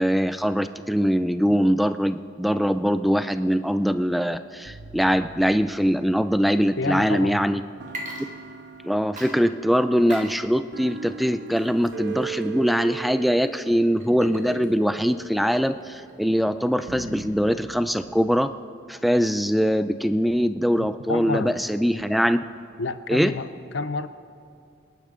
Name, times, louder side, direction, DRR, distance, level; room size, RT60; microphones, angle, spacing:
voice 1, 0.0-7.6 8.8-18.5 18.9-22.4 23.1-23.3, equal, ahead, 11 dB, 0.3 m, -22 dB
sound 1, 4.7-7.2 7.8-18.2, right 5 dB, 55° right, 0.6 m, -40 dB
voice 2, 6.8-7.4 20.8-21.6 22.8-23.5 23.7-24.1, left 3 dB, 70° left, 12 dB, 0.6 m, -29 dB
Water / Liquid, 7.8-8.8 9.2-17.4, right 1 dB, 40° right, 1.5 m, -43 dB
25.5 x 11.0 x 3.8 m, 2.4 s
head